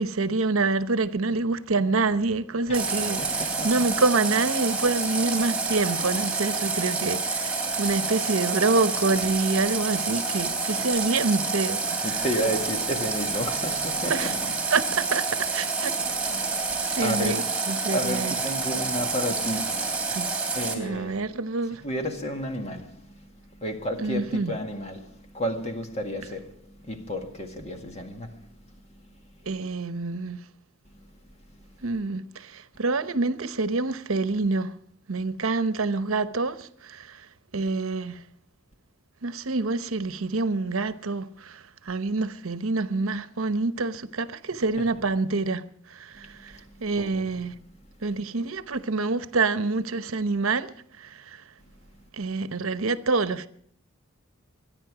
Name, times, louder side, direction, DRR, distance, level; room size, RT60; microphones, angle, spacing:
voice 1, 0.0-12.2 14.1-14.4 14.7-16.0 16.8-18.4 20.1-20.3 20.7-21.8 24.0-24.6 29.5-30.4 31.8-34.8 35.1-37.3 37.5-38.2 39.2-47.5 48.0-51.4 52.1-53.5, right 3 dB, 75° right, 0.9 m, -27 dB
Water tap faucet, 2.7-20.7, right 4 dB, 5° right, 3.1 m, -28 dB
voice 2, 3.2-3.7 12.0-14.3 16.4-17.4 17.9-19.9 20.6-21.2 21.8-29.0 30.9-31.0 31.6-31.7 44.8-44.9 46.1-47.2, equal, 30° left, 1.9 m, -32 dB
25.0 x 10.0 x 5.0 m
head